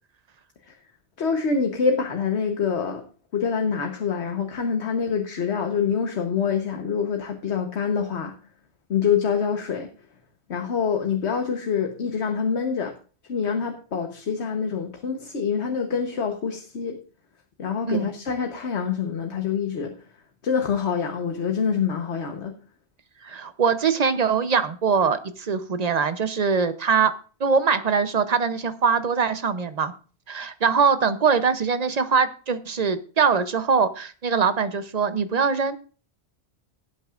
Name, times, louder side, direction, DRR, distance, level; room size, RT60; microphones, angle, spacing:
voice 1, 1.2-3.0 3.3-8.3 8.9-9.9 10.5-13.0 13.3-17.0 17.6-19.9 20.4-22.5, left 6 dB, 80° left, 1.4 m, -26 dB
voice 2, 23.2-27.1 27.4-29.9 30.3-35.8, right 5 dB, 40° right, 0.8 m, -22 dB
17.5 x 8.4 x 2.4 m
omnidirectional pair, 1.1 m